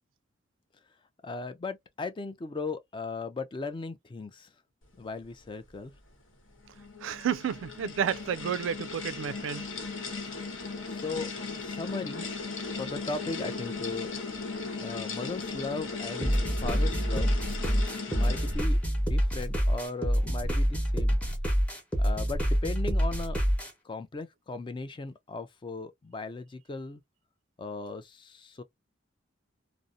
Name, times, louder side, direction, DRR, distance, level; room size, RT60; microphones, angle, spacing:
voice 1, 1.2-4.5 5.0-5.9 10.9-11.3 11.6-12.3 12.8-14.2 14.8-17.3 18.1-21.2 22.0-23.4 23.8-27.0 27.6-28.6, left 3 dB, 25° left, 0.3 m, -37 dB
sound 1, 6.6-18.8, left 4 dB, 85° left, 1.0 m, -37 dB
voice 2, 7.0-9.7, right 8 dB, 75° right, 0.3 m, -31 dB
sound 2, 16.2-23.7, equal, 5° left, 0.8 m, -27 dB
2.6 x 2.0 x 2.3 m
head